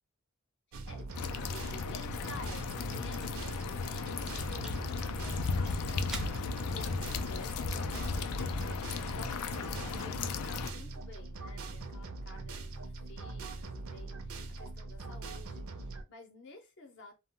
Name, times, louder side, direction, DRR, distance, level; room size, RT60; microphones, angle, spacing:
sound 1, 0.7-16.0, right 3 dB, 65° right, 0.5 m, -42 dB
voice 1, 0.9-6.1 6.7-17.1, left 2 dB, 55° left, 0.7 m, -52 dB
sound 2, 1.1-10.7, left 4 dB, 90° left, 0.4 m, -35 dB
sound 3, 1.1-9.2, right 1 dB, 5° right, 0.4 m, -53 dB
2.1 x 2.1 x 3.7 m
head